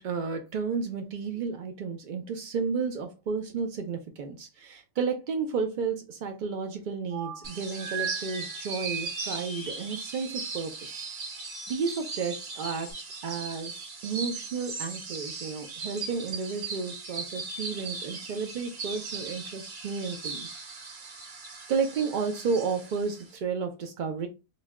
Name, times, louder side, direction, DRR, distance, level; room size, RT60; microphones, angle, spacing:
voice 1, 0.0-11.1 11.4-12.9 13.2-20.5 21.7-24.3, right 5 dB, 75° right, 0.4 m, -32 dB
sound 1, 7.1-12.9, right 7 dB, 90° right, 1.9 m, -40 dB
sound 2, 7.4-23.4, right 4 dB, 55° right, 1.0 m, -39 dB
3.9 x 2.1 x 3.5 m
omnidirectional pair, 1.4 m